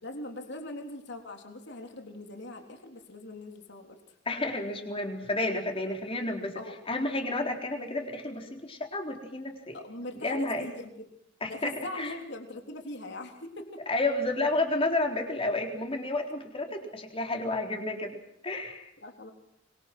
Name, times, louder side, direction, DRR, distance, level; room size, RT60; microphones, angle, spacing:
voice 1, 0.0-4.2 6.6-6.8 9.7-11.1 11.5-13.8 19.0-19.3, left 1 dB, 65° left, 3 dB, 3.6 m, -41 dB
voice 2, 4.3-6.6 6.9-9.8 10.2-10.7 11.4-12.1 13.9-18.2 18.4-18.9, left 2 dB, 30° left, 2 dB, 4.0 m, -31 dB
25.5 x 23.0 x 6.2 m, 0.74 s
head